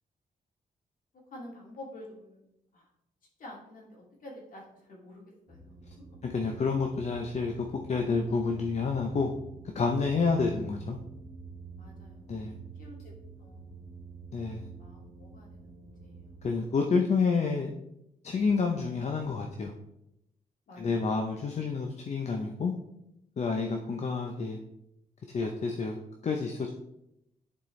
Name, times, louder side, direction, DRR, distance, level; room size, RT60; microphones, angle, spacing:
voice 1, 1.3-2.9 3.4-6.1 11.8-13.1 13.4-13.7 14.8-16.7 20.7-21.4, left 1 dB, 65° left, -2 dB, 2.3 m, -50 dB
sound 1, 5.5-16.5, right 4 dB, 15° right, 1.9 m, -48 dB
voice 2, 6.2-9.3 9.7-11.0 12.3-12.6 14.3-14.7 16.4-17.7 18.2-19.7 20.8-22.7 23.4-24.6 25.3-26.0 26.2-26.7, left 4 dB, 50° left, 2 dB, 0.7 m, -29 dB
10.5 x 4.4 x 3.2 m, 0.84 s
cardioid pair, 110°, 15 cm